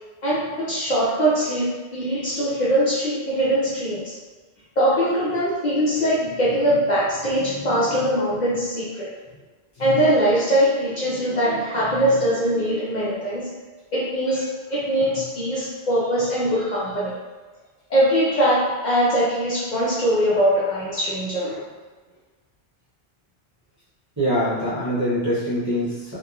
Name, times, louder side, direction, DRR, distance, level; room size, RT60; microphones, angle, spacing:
voice 1, 0.2-4.1 4.8-9.1 9.8-13.6 13.9-17.2 17.9-21.6, equal, 55° left, -8 dB, 0.6 m, -22 dB
voice 2, 24.2-26.2, equal, 20° right, -11 dB, 0.7 m, -24 dB
2.9 x 2.1 x 2.4 m, 1.3 s
omnidirectional pair, 1.1 m